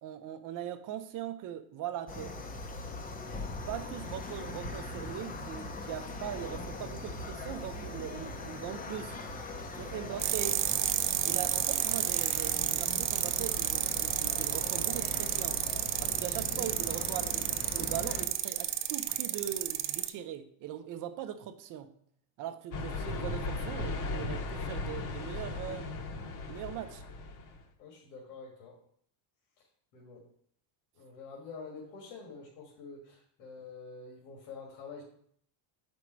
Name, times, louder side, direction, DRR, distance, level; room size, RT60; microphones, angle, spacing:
voice 1, 0.0-2.4 3.7-9.1 9.8-10.6 11.3-15.6 16.0-21.9 22.4-25.9 26.5-27.0, right 10 dB, 40° right, 10 dB, 0.6 m, -40 dB
sound 1, 2.1-18.2, left 2 dB, 20° left, 0.6 m, -41 dB
sound 2, 10.2-20.1, right 14 dB, 75° right, 0.7 m, -31 dB
sound 3, 22.7-27.6, left 3 dB, 40° left, 1.0 m, -37 dB
voice 2, 27.8-28.7 29.9-30.2 31.0-35.0, left 4 dB, 80° left, -2 dB, 2.1 m, -47 dB
7.3 x 5.3 x 4.6 m, 0.64 s
cardioid pair, 165°, 48 cm